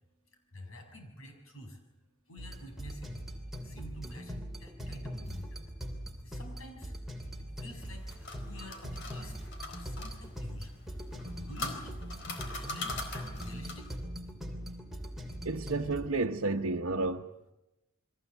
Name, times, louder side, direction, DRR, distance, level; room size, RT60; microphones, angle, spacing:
voice 1, 0.5-1.8 2.3-3.2 3.6-5.7 6.2-6.9 7.4-9.4 9.7-10.7 11.4-13.9, equal, 80° left, 6.6 m, -48 dB
sound 1, 2.4-16.1, equal, ahead, 3.0 m, -41 dB
sound 2, 7.8-10.1 11.1-13.9, left 3 dB, 55° left, 4.2 m, -41 dB
voice 2, 15.4-17.3, right 3 dB, 80° right, 1.0 m, -31 dB
29.0 x 22.5 x 8.1 m
head